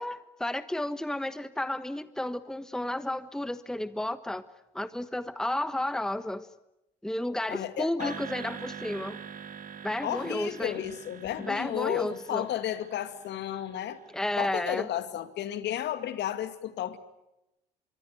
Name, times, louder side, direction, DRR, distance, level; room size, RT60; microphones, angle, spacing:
voice 1, 0.0-4.4 4.7-6.5 7.0-9.2 9.8-10.8 11.4-12.5 14.1-14.9, left 1 dB, 5° left, 13 dB, 1.3 m, -32 dB
voice 2, 7.5-8.2 10.0-14.0 14.4-17.0, left 11 dB, 55° left, 11 dB, 2.3 m, -33 dB
sound 1, 8.0-14.4, right 7 dB, 40° right, 1.7 m, -44 dB
25.0 x 24.0 x 9.3 m, 0.90 s
hypercardioid pair, 65°, 21 cm